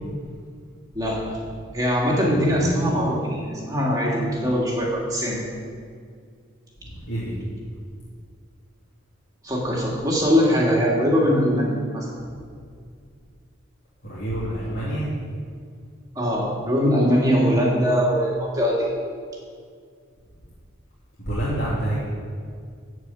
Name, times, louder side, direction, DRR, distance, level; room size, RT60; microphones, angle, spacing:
voice 1, 0.9-1.4 1.7-5.4 9.4-12.1 16.1-18.9, equal, 20° right, -3 dB, 2.3 m, -21 dB
voice 2, 2.2-2.6 6.8-7.3 14.0-15.1 21.3-22.0, right 1 dB, 55° left, -10 dB, 2.6 m, -28 dB
13.5 x 4.9 x 8.4 m, 2.1 s
head